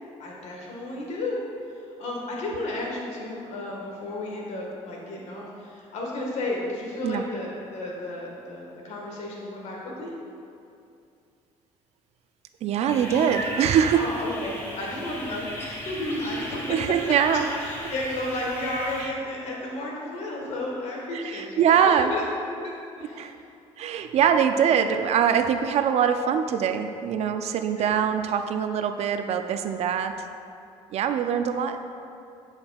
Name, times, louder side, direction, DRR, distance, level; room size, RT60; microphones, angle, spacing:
voice 1, 0.2-1.4 1.7-10.1 13.9-17.0 17.3-23.4 27.8-28.1, left 1 dB, 65° left, -2 dB, 1.5 m, -33 dB
voice 2, 12.6-14.1 16.7-17.5 19.0-19.1 21.1-22.1 23.2-23.3 23.8-30.3 30.9-31.8, right 8 dB, 60° right, 8 dB, 0.4 m, -23 dB
sound 1, 12.9-19.1, equal, 20° left, 1.4 m, -36 dB
8.9 x 5.3 x 2.3 m, 2.5 s
cardioid pair, 95°, 12 cm